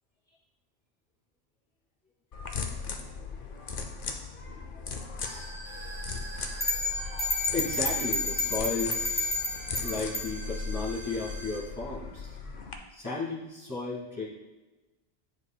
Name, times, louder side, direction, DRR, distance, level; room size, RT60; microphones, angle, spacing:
sound 1, 2.3-12.7, left 4 dB, 60° left, 0.8 m, -38 dB
voice 1, 3.2-3.8 4.7-5.2 7.5-9.3 9.8-12.4 12.9-14.3, left 3 dB, 15° left, -7 dB, 1.8 m, -35 dB
sound 2, 5.2-11.6, right 1 dB, 15° right, 1.3 m, -44 dB
sound 3, 6.6-10.3, left 2 dB, 35° left, 1.4 m, -30 dB
10.0 x 4.8 x 2.2 m, 1.1 s
omnidirectional pair, 1.1 m